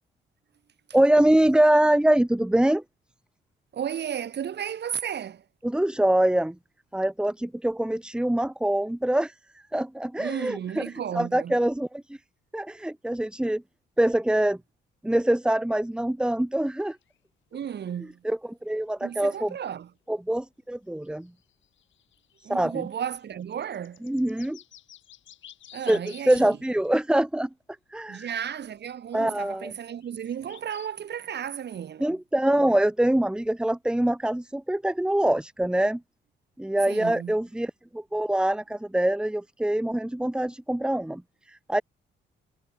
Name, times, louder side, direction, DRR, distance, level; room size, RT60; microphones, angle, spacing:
voice 1, 0.9-2.8 5.6-6.6 6.9-9.3 9.7-12.2 12.5-13.6 14.0-14.6 15.0-17.0 18.2-19.5 20.1-21.3 22.5-22.8 24.0-24.6 25.9-27.5 27.9-28.3 29.1-29.7 32.0-36.0 36.6-41.2 41.5-41.8, right 1 dB, 5° right, 0.9 m, -24 dB
voice 2, 3.7-5.4 10.2-11.6 17.5-18.2 19.0-19.9 22.4-24.0 25.7-26.5 28.1-32.2 36.9-37.3, right 9 dB, 60° right, 5.0 m, -34 dB
sound 1, 16.8-17.2 18.1-18.2 20.4-20.5 20.7-20.8 21.0-27.0 28.6-28.7 30.0-30.9 31.5-31.6, left 11 dB, 75° left, 6.3 m, -52 dB
cardioid pair, 90°, 20 cm